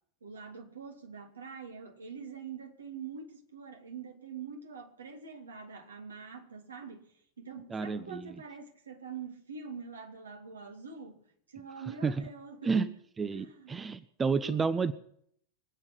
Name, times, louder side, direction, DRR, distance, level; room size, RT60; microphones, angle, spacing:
voice 1, 0.2-11.2 11.5-12.8 13.3-13.8 14.4-14.6, right 5 dB, 70° right, 2.5 m, -44 dB
voice 2, 7.7-8.3 12.0-12.2 12.6-12.9 13.2-14.9, right 5 dB, 15° right, 0.7 m, -30 dB
25.0 x 8.9 x 6.1 m
figure-of-eight pair, 90°, 0 cm